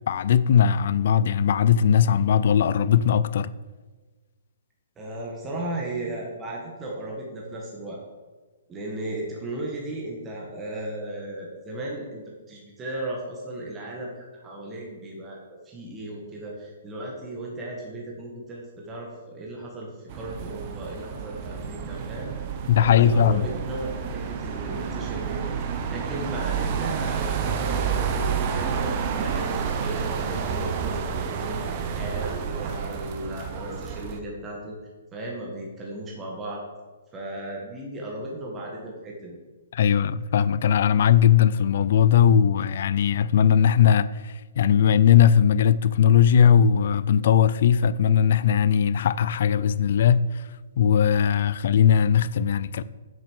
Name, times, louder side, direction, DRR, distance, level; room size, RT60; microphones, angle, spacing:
voice 1, 0.1-3.5 22.7-23.5 39.7-50.4 50.8-52.8, left 8 dB, 55° left, 0.5 m, -19 dB
voice 2, 5.0-8.0 8.7-12.2 12.5-22.3 22.8-25.5 25.9-34.7 35.1-36.6 37.1-39.4, right 1 dB, 15° right, 1.9 m, -36 dB
sound 1, 20.1-34.2, right 6 dB, 35° right, 1.0 m, -29 dB
7.9 x 7.3 x 6.5 m
hypercardioid pair, 160°, 0 cm